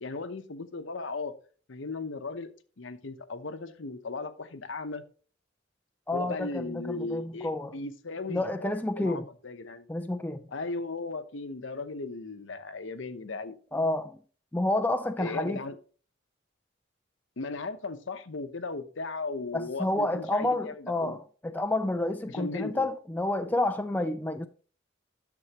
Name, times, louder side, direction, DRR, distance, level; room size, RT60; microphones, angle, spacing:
voice 1, 0.0-1.3 1.7-2.5 2.8-5.0 6.1-9.9 10.5-13.6 15.2-15.8 17.4-21.2 22.3-22.9, left 3 dB, 75° left, 0.8 m, -37 dB
voice 2, 6.1-7.8 8.3-9.3 9.9-10.5 13.7-14.2 14.5-15.6 19.5-24.5, left 2 dB, 10° left, 0.4 m, -29 dB
11.5 x 7.0 x 2.9 m
head